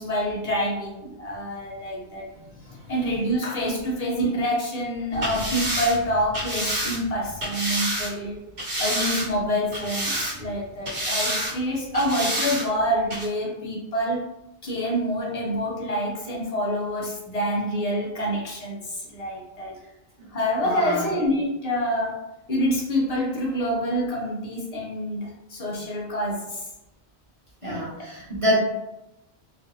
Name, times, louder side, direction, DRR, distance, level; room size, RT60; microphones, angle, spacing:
voice 1, 0.0-2.3 2.9-8.4 8.8-14.2 14.6-19.8 20.3-22.2 22.5-26.7 27.6-28.1 28.5-28.6, equal, 45° left, -3 dB, 0.6 m, -27 dB
voice 2, 2.3-2.9 20.2-20.3 20.6-21.1 27.6-28.6, equal, 30° right, -8 dB, 1.2 m, -28 dB
sound 1, 5.1-8.1 8.6-9.4 9.7-10.6 10.9-11.5 11.9-12.7 13.1-13.2, right 1 dB, 75° right, 1.3 m, -28 dB
2.5 x 2.3 x 2.6 m, 0.92 s
omnidirectional pair, 1.1 m